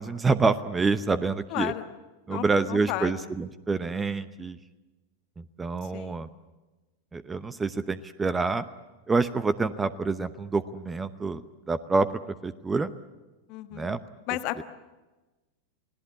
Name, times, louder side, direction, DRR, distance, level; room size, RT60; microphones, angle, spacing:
voice 1, 0.0-1.7 2.3-4.6 5.4-6.3 7.1-8.7 9.1-12.9 13.7-14.0, right 4 dB, 15° right, 15 dB, 0.8 m, -27 dB
voice 2, 1.5-1.8 2.3-3.1 5.9-6.2 13.5-13.9 14.3-14.6, left 16 dB, 45° left, 10 dB, 1.5 m, -33 dB
29.0 x 18.5 x 8.4 m, 1.2 s
figure-of-eight pair, 90°, 0 cm